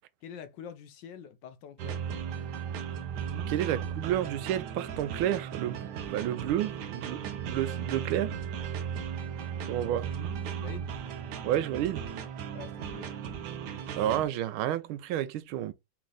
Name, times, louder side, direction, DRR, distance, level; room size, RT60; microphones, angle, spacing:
voice 1, 0.2-2.0 10.6-10.9 12.5-13.1, left 7 dB, 70° left, 1.3 m, -45 dB
sound 1, 1.8-14.2, right 8 dB, 65° right, 1.2 m, -36 dB
voice 2, 3.5-8.4 9.7-10.1 11.4-12.1 14.0-15.7, right 12 dB, 85° right, 1.4 m, -30 dB
4.2 x 3.2 x 3.8 m
omnidirectional pair, 2.2 m